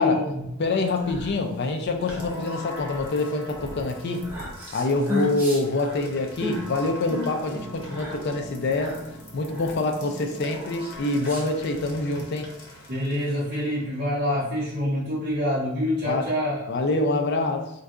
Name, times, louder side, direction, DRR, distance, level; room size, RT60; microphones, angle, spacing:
voice 1, 0.0-0.4 12.9-16.7, left 1 dB, 40° right, 0.7 m, -26 dB
voice 2, 0.6-4.3 4.7-12.5 16.0-16.2 16.7-17.7, left 2 dB, 50° left, 0.4 m, -26 dB
sound 1, 0.7-11.9, left 1 dB, 10° right, 0.6 m, -36 dB
sound 2, 2.0-13.8, left 1 dB, 80° left, 0.8 m, -42 dB
2.6 x 2.2 x 3.6 m
head